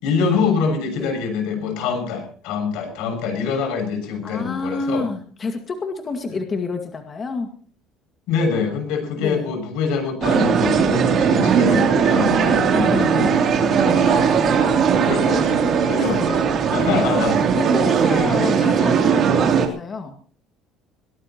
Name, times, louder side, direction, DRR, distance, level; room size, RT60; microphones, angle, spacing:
voice 1, 0.0-5.1 8.3-17.3, left 5 dB, 80° left, 6 dB, 6.7 m, -25 dB
voice 2, 4.2-7.5 9.2-9.5 12.9-13.2 16.0-16.4 16.8-17.2 17.5-20.2, left 3 dB, 25° left, 5 dB, 2.0 m, -28 dB
sound 1, 10.2-19.7, right 6 dB, 40° right, 3.2 m, -18 dB
22.5 x 17.5 x 3.0 m, 0.42 s
cardioid pair, 155°, 0 cm